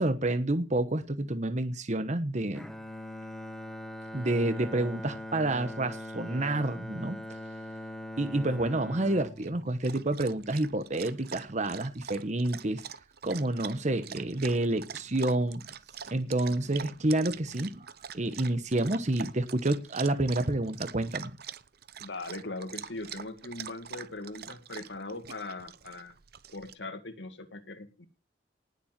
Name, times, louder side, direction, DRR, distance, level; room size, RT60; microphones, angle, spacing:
voice 1, 0.0-2.7 4.1-7.4 8.2-12.8 13.2-15.6 16.1-17.9 18.1-21.3, right 2 dB, 40° right, 10 dB, 1.1 m, -29 dB
Bowed string instrument, 2.5-10.8, left 1 dB, 5° left, 1.3 m, -42 dB
Dog, 9.4-26.7, right 8 dB, 60° right, 0.9 m, -44 dB
voice 2, 22.0-26.1 26.5-28.1, left 2 dB, 80° left, 6 dB, 2.1 m, -40 dB
19.0 x 7.3 x 7.5 m, 0.33 s
head